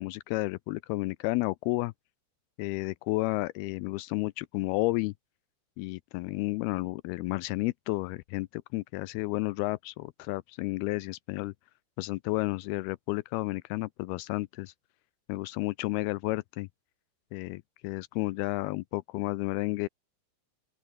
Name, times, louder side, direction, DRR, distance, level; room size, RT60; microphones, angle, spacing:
voice 1, 0.0-1.9 2.6-5.1 5.8-11.5 12.0-14.7 15.3-16.7 17.3-19.9, left 21 dB, 85° left, 2.3 m, -32 dB
open air
omnidirectional pair, 5.0 m